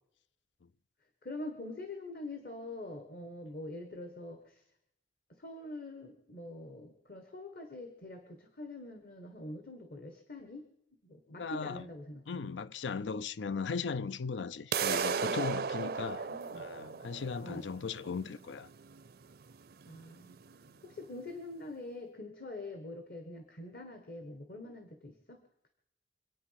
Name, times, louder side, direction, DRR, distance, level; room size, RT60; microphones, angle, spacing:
voice 1, 1.2-4.6 5.3-10.6 11.0-12.5 15.7-16.6 17.4-17.6 19.9-20.4 20.8-25.7, left 2 dB, 55° left, 1.5 m, -45 dB
voice 2, 11.3-11.8 12.3-16.2 16.5-18.7, left 5 dB, 85° left, 0.5 m, -37 dB
sound 1, 14.7-20.7, right 6 dB, 55° right, 0.5 m, -36 dB
25.0 x 8.9 x 5.8 m
head